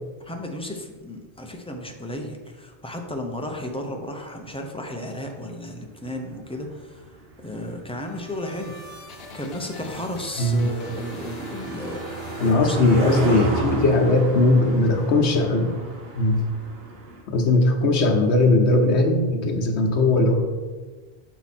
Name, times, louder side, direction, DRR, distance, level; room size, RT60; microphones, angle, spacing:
voice 1, 0.2-7.0 7.4-8.8 9.3-13.6, left 1 dB, 10° left, 2 dB, 0.4 m, -33 dB
Car passing by, 6.1-17.2, right 2 dB, 65° right, 1.2 m, -34 dB
sound 1, 7.6-13.2, equal, 70° left, 1.0 m, -41 dB
voice 2, 10.4-10.7 12.4-15.7 16.2-16.4 17.3-20.4, left 2 dB, 90° left, 2 dB, 1.1 m, -19 dB
5.9 x 4.6 x 4.2 m, 1.3 s
omnidirectional pair, 1.1 m